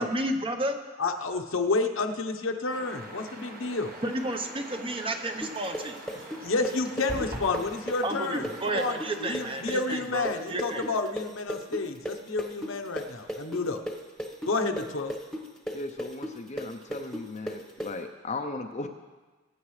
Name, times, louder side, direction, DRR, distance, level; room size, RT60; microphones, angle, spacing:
voice 1, 0.0-0.8 4.0-6.0 8.0-10.8, right 1 dB, 25° right, 5 dB, 0.8 m, -31 dB
voice 2, 1.0-3.9 6.4-13.8 14.5-15.1, left 3 dB, 70° left, 5 dB, 0.9 m, -30 dB
sound 1, 2.7-9.7, right 2 dB, 45° right, 1.2 m, -45 dB
sound 2, 5.4-13.0 13.3-17.9, equal, ahead, 1.2 m, -35 dB
sound 3, 7.1-7.6, equal, 60° right, 4.3 m, -36 dB
voice 3, 15.7-18.9, left 2 dB, 35° left, 4 dB, 0.6 m, -37 dB
21.5 x 9.3 x 3.2 m, 1.3 s
head